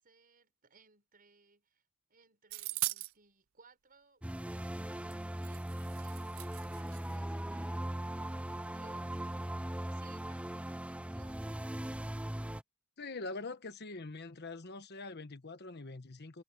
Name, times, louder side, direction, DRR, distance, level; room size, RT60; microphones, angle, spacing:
voice 1, 0.0-11.7, right 4 dB, 45° right, 5.6 m, -65 dB
sound 1, 2.5-3.1 5.1-5.2 5.4-7.2, right 19 dB, 75° right, 0.5 m, -40 dB
sound 2, 4.2-12.6, right 1 dB, 5° right, 0.6 m, -39 dB
voice 2, 13.0-16.4, left 3 dB, 55° left, 1.3 m, -44 dB
head